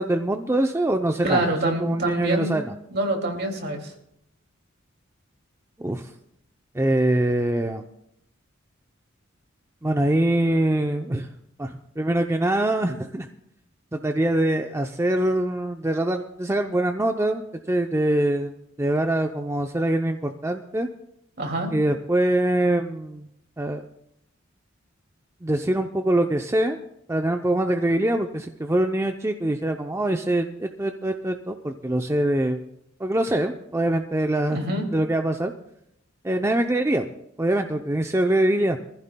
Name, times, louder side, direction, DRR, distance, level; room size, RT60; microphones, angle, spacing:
voice 1, 0.0-1.5 1.8-2.7 5.8-6.1 6.7-7.8 9.8-11.3 11.6-13.3 13.9-17.4 17.7-20.9 21.7-23.3 23.6-23.8 25.4-26.8 27.1-32.6 33.0-34.6 34.9-35.5 36.2-37.1 37.4-38.8, right 1 dB, 15° right, 5 dB, 0.5 m, -23 dB
voice 2, 1.2-2.5 2.9-3.9 21.4-21.7 34.5-34.8, right 1 dB, 55° right, 2 dB, 2.4 m, -26 dB
24.0 x 15.0 x 2.2 m, 0.75 s
head